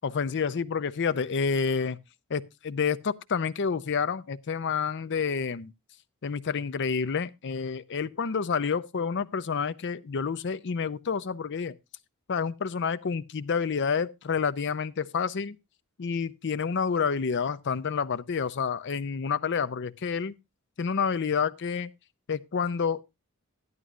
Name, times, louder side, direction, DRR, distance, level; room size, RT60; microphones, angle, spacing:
voice 1, 0.0-2.0 2.3-5.7 6.2-11.8 12.3-15.6 16.0-20.3 20.8-21.9 22.3-23.0, left 6 dB, 55° left, 0.5 m, -29 dB
12.5 x 11.0 x 2.4 m
head